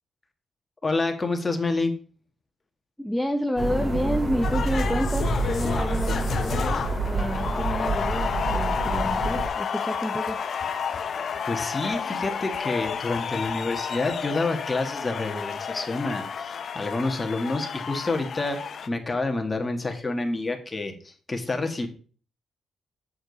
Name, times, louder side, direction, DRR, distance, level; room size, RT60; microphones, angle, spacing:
voice 1, 0.8-1.9 11.5-21.9, left 3 dB, 25° left, 5 dB, 1.7 m, -28 dB
voice 2, 3.0-10.4, equal, ahead, 4 dB, 0.7 m, -29 dB
sound 1, 3.6-9.5, right 2 dB, 25° right, 2.2 m, -28 dB
sound 2, 4.4-18.9, left 7 dB, 55° left, 0.7 m, -30 dB
7.9 x 6.7 x 4.1 m, 0.41 s
cardioid pair, 90°, 0 cm